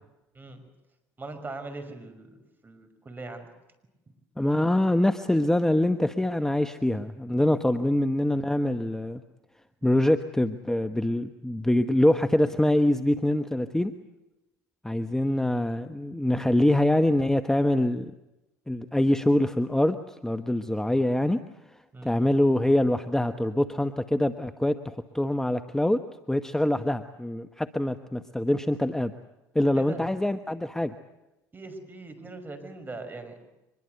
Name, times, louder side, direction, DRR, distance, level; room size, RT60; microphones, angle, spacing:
voice 1, 1.2-3.5 21.9-22.1 29.7-30.1 31.5-33.5, right 3 dB, 25° right, 8 dB, 5.6 m, -41 dB
voice 2, 4.4-9.2 9.8-13.9 14.8-18.1 18.7-21.4 22.0-26.0 26.3-29.1 29.5-30.9, left 1 dB, 5° left, 10 dB, 1.1 m, -24 dB
24.5 x 21.5 x 8.0 m, 0.98 s
hypercardioid pair, 70°, 8 cm